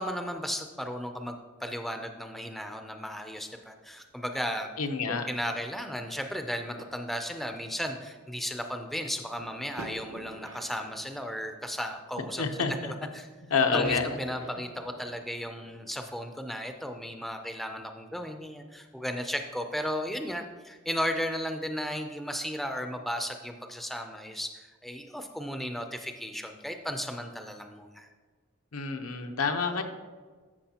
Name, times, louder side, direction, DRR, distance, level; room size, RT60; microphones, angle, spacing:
voice 1, 0.0-4.7 5.1-13.3 13.7-28.1, equal, ahead, 5 dB, 0.4 m, -35 dB
sound 1, 3.1-17.7, right 2 dB, 65° right, 0.8 m, -49 dB
voice 2, 4.8-5.3 12.4-12.9 13.5-14.2 28.7-29.8, left 5 dB, 85° left, 5 dB, 0.8 m, -28 dB
13.5 x 6.1 x 2.9 m, 1.4 s
head